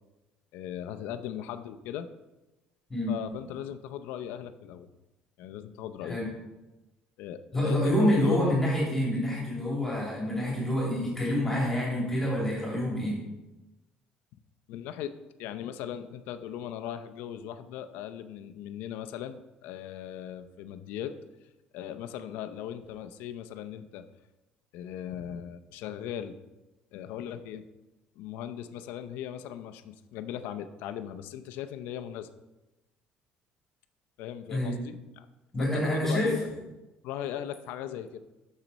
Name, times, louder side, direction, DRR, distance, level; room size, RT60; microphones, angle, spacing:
voice 1, 0.5-2.1 3.1-4.9 5.4-6.2 7.2-8.6 14.7-15.1 15.4-21.1 21.7-24.0 24.7-26.3 26.9-27.6 28.2-32.3 34.2-35.3 35.6-36.5 37.0-38.2, left 10 dB, 75° left, 9 dB, 0.6 m, -38 dB
voice 2, 7.5-13.2 34.5-34.8 35.5-36.5, left 1 dB, 10° left, -5 dB, 2.8 m, -27 dB
9.0 x 6.6 x 4.1 m, 1.0 s
cardioid pair, 170°, 3 cm